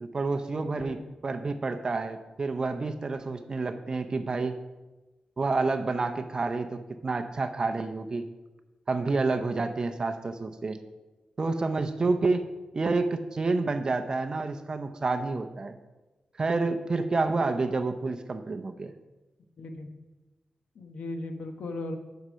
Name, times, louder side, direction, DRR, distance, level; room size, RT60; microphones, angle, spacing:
voice 1, 0.0-1.0 1.2-4.6 5.4-8.2 8.9-10.8 11.4-12.5 12.7-15.7 16.4-18.9, right 3 dB, 30° right, 8 dB, 0.6 m, -29 dB
voice 2, 19.6-19.9 20.7-22.0, left 2 dB, 90° left, 6 dB, 1.0 m, -37 dB
7.9 x 5.6 x 6.3 m, 1.1 s
wide cardioid pair, 170°, 2 cm